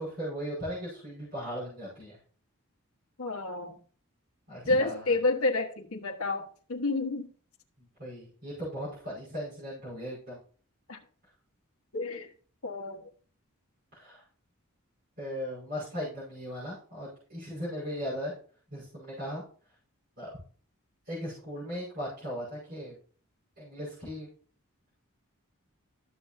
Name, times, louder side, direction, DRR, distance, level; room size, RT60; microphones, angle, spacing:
voice 1, 0.0-2.2 4.5-5.1 7.8-10.4 13.9-14.2 15.2-18.3 18.7-19.4 20.2-20.3 21.1-23.0 23.6-24.3, equal, 50° right, 5.2 m, -37 dB
voice 2, 3.2-3.8 4.7-7.3 10.9-11.0 11.9-12.3 12.6-13.0, left 2 dB, 85° left, 1.3 m, -29 dB
13.0 x 6.9 x 2.7 m
head